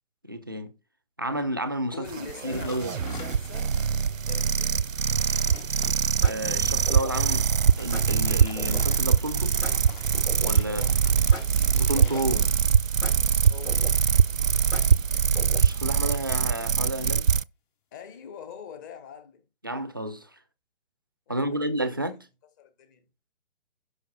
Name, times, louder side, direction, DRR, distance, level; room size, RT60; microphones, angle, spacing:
voice 1, 0.2-0.7 1.2-2.9 6.2-7.5 7.8-9.6 10.4-11.0 11.7-12.5 15.6-17.3 19.6-20.3 21.3-22.3, right 1 dB, 20° right, 0.5 m, -31 dB
voice 2, 1.9-5.0 10.6-10.9 13.5-13.9 17.9-19.4 21.3-22.0 22.6-23.0, left 6 dB, 15° left, 0.9 m, -43 dB
sound 1, 2.1-17.4, right 7 dB, 80° right, 0.6 m, -23 dB
sound 2, 2.5-3.8 4.3-4.4 4.9-6.0 7.5-12.8 13.8-15.5 15.8-16.2, left 6 dB, 40° left, 2.9 m, -47 dB
sound 3, 5.4-5.7 6.2-7.4 7.9-8.9 9.6-10.8 11.3-12.5 13.0-14.2 14.7-15.9, left 1 dB, 75° left, 5.3 m, -40 dB
11.5 x 5.4 x 4.1 m
figure-of-eight pair, 140°, 39 cm